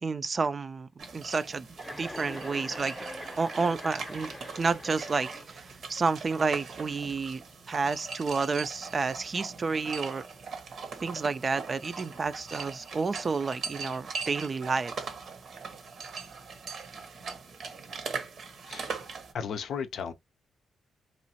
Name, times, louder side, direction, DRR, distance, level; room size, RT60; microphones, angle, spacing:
voice 1, 0.0-1.7 2.0-3.0 3.4-10.2 11.0-15.1, right 4 dB, 40° right, 0.3 m, -30 dB
sound 1, 1.0-19.3, right 5 dB, 65° right, 0.7 m, -41 dB
Chuckle chortle, 1.7-5.8, left 1 dB, 10° left, 0.7 m, -43 dB
voice 2, 18.7-19.0 19.3-20.1, left 7 dB, 70° left, 0.4 m, -35 dB
3.0 x 2.4 x 2.7 m
cardioid pair, 65°, 0 cm